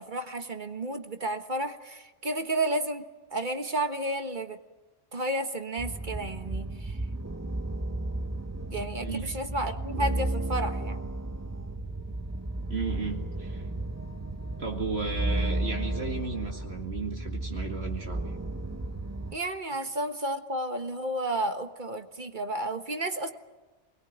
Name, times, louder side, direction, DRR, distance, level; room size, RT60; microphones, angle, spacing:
voice 1, 0.0-3.0 3.3-4.6 5.1-7.0 8.7-11.1 19.3-23.3, right 1 dB, 45° right, 7 dB, 1.6 m, -32 dB
sound 1, 5.8-19.3, right 2 dB, 15° right, 0.8 m, -33 dB
voice 2, 12.7-13.6 14.6-18.3 19.7-19.8, right 4 dB, 60° right, 1 dB, 2.3 m, -34 dB
24.0 x 21.5 x 9.3 m, 1.2 s
omnidirectional pair, 1.2 m